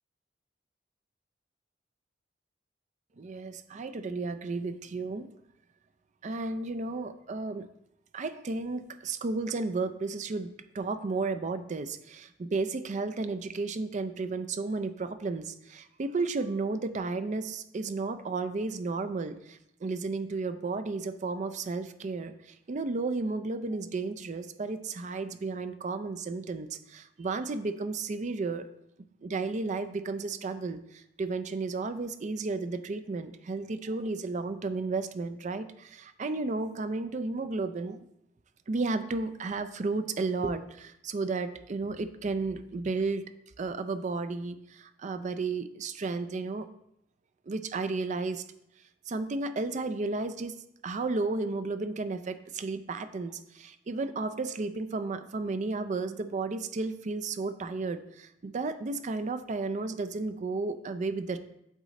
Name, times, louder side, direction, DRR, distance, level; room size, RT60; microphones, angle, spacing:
voice 1, 3.2-5.3 6.2-7.7 8.1-10.5 10.7-22.3 22.7-28.7 29.2-30.8 31.2-38.1 38.7-43.2 43.6-46.7 47.5-48.4 49.1-50.6 50.8-61.4, right 3 dB, 40° right, 11 dB, 0.4 m, -33 dB
8.2 x 3.7 x 4.1 m, 0.78 s
head